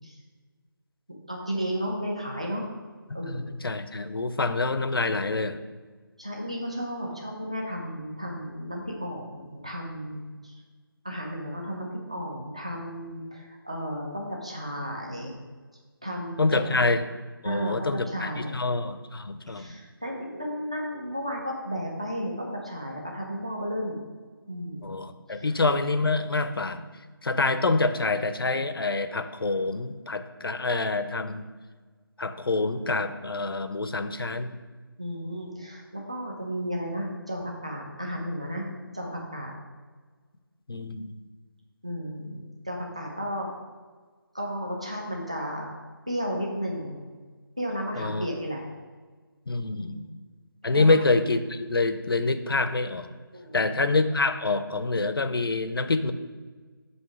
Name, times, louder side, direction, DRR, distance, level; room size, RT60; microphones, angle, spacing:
voice 1, 1.3-2.7 3.1-3.5 6.2-10.5 11.0-15.3 16.0-16.6 17.4-18.6 19.5-24.0 24.5-24.9 25.3-25.5 35.0-38.6 38.9-39.5 41.8-43.5 44.3-45.8 46.1-47.0 47.6-48.7 49.8-50.0 50.7-51.0 53.3-53.7, equal, 15° right, -1 dB, 0.5 m, -33 dB
voice 2, 3.2-5.6 16.4-17.0 17.4-19.7 24.8-26.9 27.2-31.5 32.2-34.6 40.7-41.1 48.0-48.3 49.5-50.0 50.6-53.1 53.5-56.1, left 3 dB, 70° left, 10 dB, 0.6 m, -26 dB
7.8 x 2.9 x 5.9 m, 1.4 s
figure-of-eight pair, 180°, 12 cm